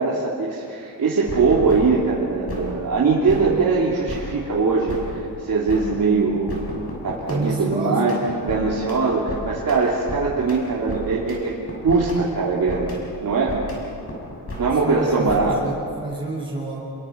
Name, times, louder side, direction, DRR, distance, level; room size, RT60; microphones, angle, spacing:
voice 1, 0.0-6.6 7.0-8.1 8.4-11.5 11.8-13.6 14.6-15.6, right 4 dB, 55° right, -5 dB, 3.2 m, -21 dB
sound 1, 1.1-2.2 2.5-3.0 3.3-6.2 6.5-11.4 11.7-13.2 13.5-15.0 15.3-15.4, left 1 dB, 35° left, 6.4 m, -34 dB
voice 2, 7.3-8.1 14.8-16.8, right 2 dB, 10° right, -4 dB, 7.7 m, -29 dB
29.0 x 22.5 x 5.3 m, 2.6 s
wide cardioid pair, 145°, 40 cm